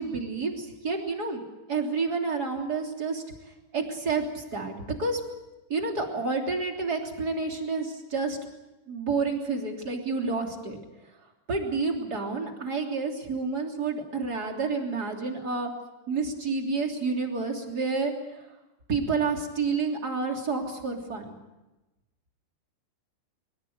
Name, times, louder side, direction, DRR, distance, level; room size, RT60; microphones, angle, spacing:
voice 1, 0.0-1.4 1.7-3.2 3.7-5.2 5.7-8.4 8.9-10.8 11.5-15.7 16.1-18.4 18.9-21.4, right 4 dB, 25° right, 2 dB, 3.2 m, -29 dB
23.5 x 22.0 x 7.9 m, 1.0 s
omnidirectional pair, 4.8 m